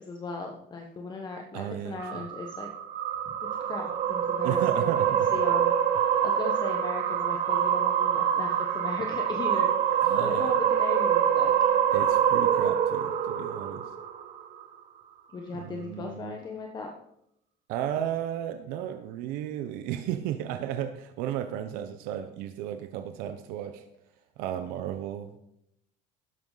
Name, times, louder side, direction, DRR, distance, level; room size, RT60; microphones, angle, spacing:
voice 1, 0.0-2.7 3.6-5.0 5.3-11.5 15.3-16.9, left 4 dB, 30° left, 2 dB, 1.3 m, -37 dB
voice 2, 1.5-2.3 4.4-5.4 10.0-10.5 11.9-13.8 15.5-16.3 17.7-23.8 24.4-25.4, right 10 dB, 90° right, 8 dB, 0.9 m, -34 dB
sound 1, 2.0-14.5, right 9 dB, 55° right, 1.4 m, -25 dB
13.0 x 10.5 x 4.0 m, 0.77 s
cardioid pair, 135°, 15 cm